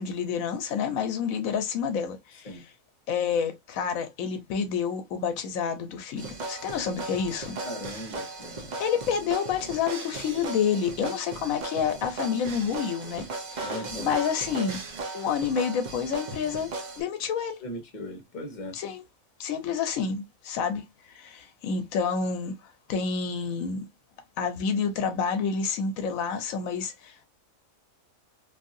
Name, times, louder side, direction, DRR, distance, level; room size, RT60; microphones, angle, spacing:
voice 1, 0.0-2.6 3.1-7.6 8.8-14.8 15.1-16.7 17.0-17.6 18.7-19.0 19.4-20.8 21.1-22.5 22.9-23.9 24.4-27.3, left 6 dB, 85° left, 1.1 m, -29 dB
sound 1, 6.2-17.0, right 3 dB, 45° right, 0.6 m, -37 dB
voice 2, 7.6-8.7 13.6-14.1 17.6-18.7, left 1 dB, 35° left, 1.0 m, -38 dB
2.7 x 2.7 x 2.5 m
omnidirectional pair, 1.4 m